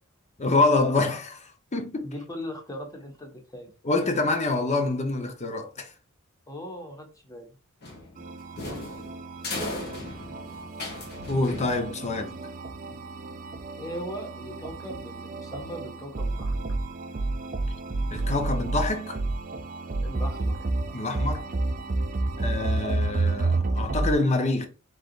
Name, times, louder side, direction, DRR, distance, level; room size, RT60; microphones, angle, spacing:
voice 1, 0.4-2.1 3.8-5.9 11.3-12.3 18.1-19.2 20.9-21.5 22.4-24.7, left 2 dB, 30° left, 0.7 m, -26 dB
voice 2, 2.0-3.7 6.5-7.5 9.6-9.8 13.8-16.6 20.0-20.6, equal, 15° left, 1.2 m, -39 dB
sound 1, 7.8-12.3, left 2 dB, 50° left, 1.4 m, -37 dB
sound 2, 8.2-24.1, right 2 dB, 40° right, 0.5 m, -30 dB
4.8 x 3.9 x 2.4 m
head